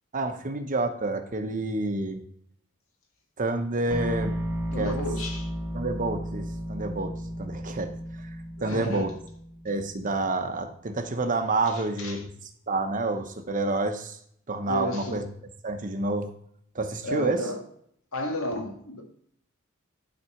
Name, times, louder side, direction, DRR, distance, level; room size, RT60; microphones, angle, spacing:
voice 1, 0.1-2.2 3.4-4.3 4.8-4.9 5.7-7.9 8.6-9.1 9.6-12.3 12.7-14.2 14.5-15.3 15.6-16.3 16.7-17.4, right 2 dB, 40° right, 0.9 m, -28 dB
sound 1, 3.9-9.9, equal, 10° right, 1.4 m, -34 dB
voice 2, 4.7-5.5 8.6-9.0 11.7-12.2 14.7-15.2 17.0-17.6 18.1-19.0, left 1 dB, 75° left, 1.9 m, -33 dB
11.5 x 4.3 x 5.7 m
head